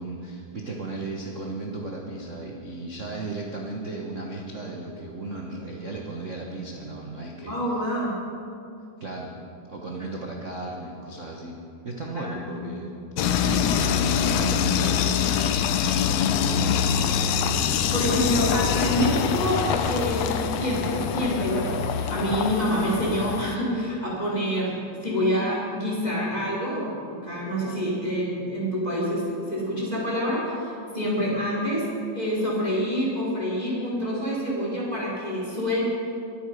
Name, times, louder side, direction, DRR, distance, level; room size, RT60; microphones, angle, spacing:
voice 1, 0.0-7.6 9.0-9.3 9.7-11.6 11.8-12.9 13.2-15.3 16.0-16.9, right 2 dB, 65° right, -1 dB, 0.7 m, -35 dB
voice 2, 7.4-8.1 12.1-12.9 17.7-31.9 32.1-35.8, equal, 15° left, -6 dB, 3.8 m, -27 dB
sound 1, 13.2-23.6, left 7 dB, 75° left, 1.7 m, -24 dB
22.5 x 8.9 x 5.2 m, 2.5 s
omnidirectional pair, 3.4 m